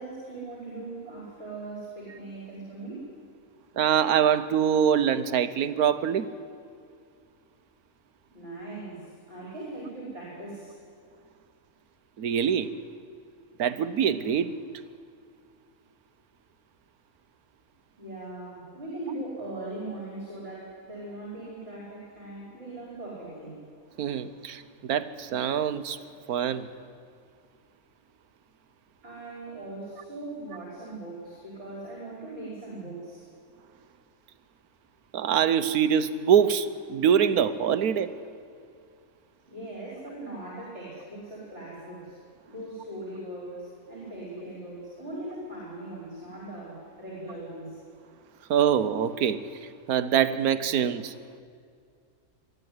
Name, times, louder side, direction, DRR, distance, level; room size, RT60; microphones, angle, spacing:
voice 1, 0.0-3.1 8.3-10.8 18.0-23.6 29.0-33.2 39.5-42.2 42.5-47.8, right 2 dB, 50° right, -5 dB, 5.5 m, -40 dB
voice 2, 3.8-6.2 12.2-12.7 13.6-14.6 24.0-26.0 26.3-26.7 35.1-38.1 48.5-49.4 49.9-51.1, right 8 dB, 85° right, 12 dB, 1.4 m, -24 dB
23.0 x 14.0 x 9.6 m, 2.3 s
omnidirectional pair, 1.6 m